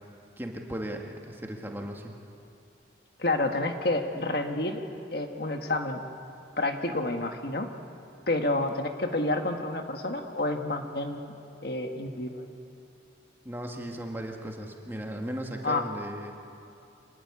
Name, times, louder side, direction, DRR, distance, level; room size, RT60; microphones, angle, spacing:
voice 1, 0.4-2.1 13.4-16.4, equal, 10° right, 1 dB, 1.8 m, -36 dB
voice 2, 3.2-4.8 5.1-6.0 6.6-7.7 8.3-11.2 11.6-12.5 15.6-15.8, left 2 dB, 55° left, 5 dB, 1.5 m, -29 dB
26.0 x 18.5 x 9.6 m, 2.6 s
head